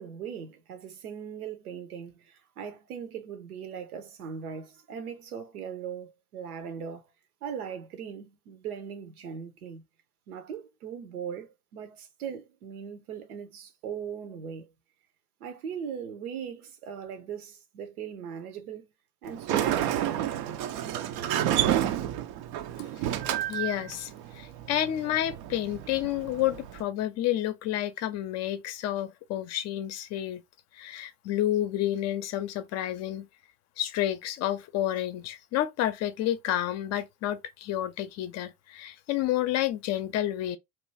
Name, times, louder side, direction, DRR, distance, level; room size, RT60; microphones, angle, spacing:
voice 1, 0.0-7.1 7.4-9.8 10.3-14.7 15.4-18.9 19.2-20.3, right 7 dB, 75° right, 1.0 m, -39 dB
Sliding door, 19.2-26.8, right 11 dB, 45° right, 0.5 m, -30 dB
voice 2, 23.5-30.4 30.7-33.3 33.8-40.6, left 12 dB, 35° left, 0.6 m, -30 dB
3.0 x 2.3 x 3.2 m
hypercardioid pair, 85°, 44 cm